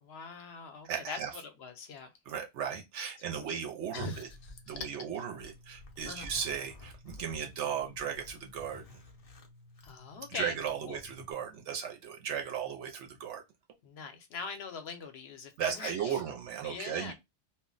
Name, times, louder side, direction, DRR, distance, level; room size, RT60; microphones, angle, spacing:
voice 1, 0.0-2.1 3.4-3.6 3.9-5.2 6.0-6.3 9.8-11.0 13.8-16.2 16.6-17.1, left 5 dB, 70° left, 0.8 m, -42 dB
voice 2, 0.8-1.3 2.3-4.3 4.7-8.8 10.3-13.4 15.6-17.1, right 8 dB, 85° right, 0.9 m, -36 dB
Zipper (clothing), 4.0-11.3, left 2 dB, 45° left, 0.5 m, -53 dB
2.2 x 2.1 x 3.7 m
omnidirectional pair, 1.2 m